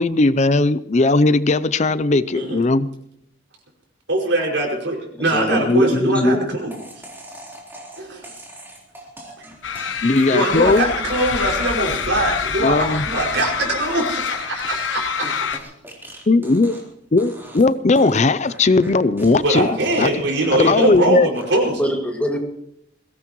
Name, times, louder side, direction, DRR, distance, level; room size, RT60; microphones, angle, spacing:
voice 1, 0.0-2.9 5.5-6.4 10.0-10.9 12.6-13.0 16.3-16.7 17.1-19.7 20.0-20.1 20.5-21.3, left 3 dB, 40° left, 15 dB, 0.5 m, -18 dB
voice 2, 4.1-6.7 8.0-8.3 9.4-9.5 10.3-15.4 19.4-21.9, right 1 dB, 80° right, -1 dB, 5.6 m, -22 dB
voice 3, 5.2-5.9 6.2-6.4 21.8-22.4, equal, 10° left, 1 dB, 2.2 m, -22 dB
sound 1, 6.7-16.9 17.2-17.7 18.0-21.0 21.3-21.8, right 1 dB, 10° right, 3.9 m, -40 dB
sound 2, 9.6-15.6, left 6 dB, 85° left, 1.1 m, -26 dB
22.0 x 17.5 x 3.1 m, 0.75 s
head